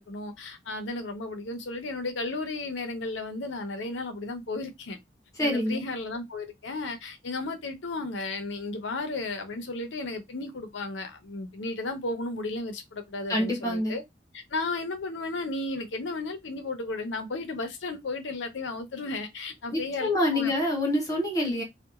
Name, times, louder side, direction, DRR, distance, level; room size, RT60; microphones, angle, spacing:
voice 1, 0.0-5.0 5.4-14.0 14.3-20.5, left 2 dB, 85° left, 0.6 m, -34 dB
voice 2, 5.4-5.8 13.3-14.0 19.7-21.6, left 1 dB, 20° left, 0.7 m, -26 dB
2.8 x 2.2 x 2.4 m
head